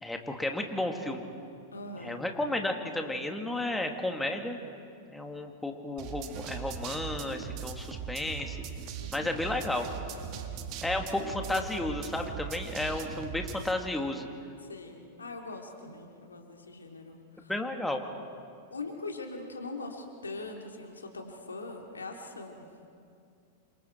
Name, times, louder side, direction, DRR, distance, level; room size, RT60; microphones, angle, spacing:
voice 1, 0.0-1.2 2.0-4.6 5.1-8.6 9.1-9.9 10.8-14.3 17.5-18.0, left 1 dB, 5° left, 3 dB, 2.3 m, -32 dB
voice 2, 1.7-2.2 8.9-9.8 10.1-10.5 14.6-17.5 18.7-22.7, left 3 dB, 90° left, 2 dB, 2.9 m, -42 dB
sound 1, 6.0-13.7, right 7 dB, 45° right, 1.9 m, -40 dB
29.0 x 26.0 x 4.6 m, 2.4 s
hypercardioid pair, 100°, 0 cm